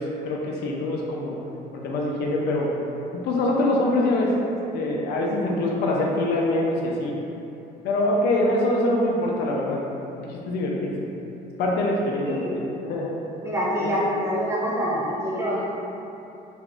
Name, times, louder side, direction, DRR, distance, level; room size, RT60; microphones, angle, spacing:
voice 1, 0.0-1.4 1.7-2.7 3.2-4.3 4.7-7.1 7.8-9.8 10.2-10.9 11.6-12.6 12.9-13.1 13.8-13.9, left 1 dB, 75° left, -2 dB, 0.5 m, -24 dB
voice 2, 13.4-15.6, equal, 15° right, -8 dB, 0.7 m, -25 dB
3.3 x 2.5 x 2.4 m, 2.9 s
cardioid pair, 110°, 17 cm